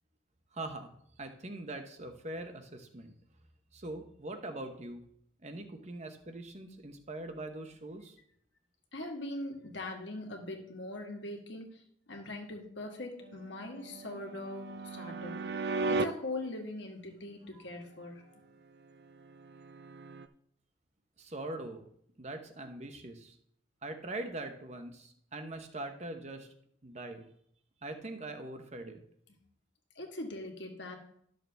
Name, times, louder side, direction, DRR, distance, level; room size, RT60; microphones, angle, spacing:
voice 1, 0.5-3.2 3.7-5.0 5.4-8.2 21.2-21.9 22.2-23.4 23.8-26.5 26.8-27.3 27.8-29.0, right 2 dB, 35° right, 6 dB, 1.0 m, -42 dB
voice 2, 8.9-11.8 12.1-15.5 15.9-18.4 29.9-31.0, left 1 dB, 70° left, 2 dB, 1.7 m, -41 dB
sound 1, 13.2-16.0 19.0-20.3, right 3 dB, 55° right, 0.5 m, -37 dB
12.0 x 6.5 x 3.4 m, 0.68 s
head